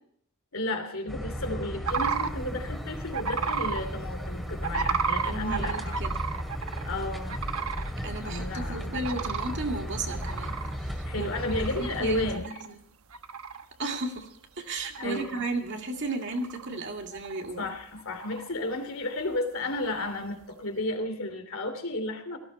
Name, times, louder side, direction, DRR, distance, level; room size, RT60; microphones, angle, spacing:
voice 1, 0.5-6.0 6.8-7.4 8.2-9.3 11.1-12.6 15.0-15.4 17.6-22.4, left 2 dB, 65° left, 6 dB, 2.9 m, -33 dB
sound 1, 1.1-12.4, equal, ahead, 2.4 m, -35 dB
sound 2, 1.9-2.3 3.1-3.8 4.6-6.9 7.3-7.9 8.3-8.4 8.9-9.6 10.1-12.0 12.3-12.7 13.1-13.6 14.2-14.3 14.7-15.5 16.1-16.8 17.1-17.7 18.0-18.5 19.6-20.2, right 6 dB, 75° right, 1.1 m, -32 dB
voice 2, 5.2-6.2 8.0-11.3 11.6-12.8 13.8-17.7, right 2 dB, 50° right, 3 dB, 2.3 m, -35 dB
17.5 x 15.5 x 4.3 m, 0.65 s
head